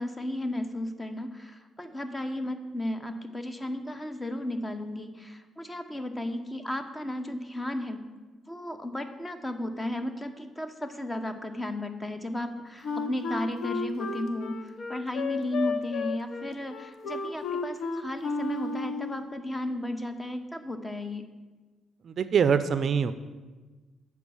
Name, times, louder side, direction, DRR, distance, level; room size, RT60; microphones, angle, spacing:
voice 1, 0.0-8.1 8.5-21.2, left 1 dB, 15° left, 8 dB, 0.8 m, -34 dB
Wind instrument woodwind instrument, 12.8-19.1, left 4 dB, 65° left, 0.8 m, -33 dB
voice 2, 22.0-23.1, right 6 dB, 55° right, 12 dB, 0.4 m, -24 dB
7.1 x 4.7 x 7.0 m, 1.3 s
cardioid pair, 90°, 0 cm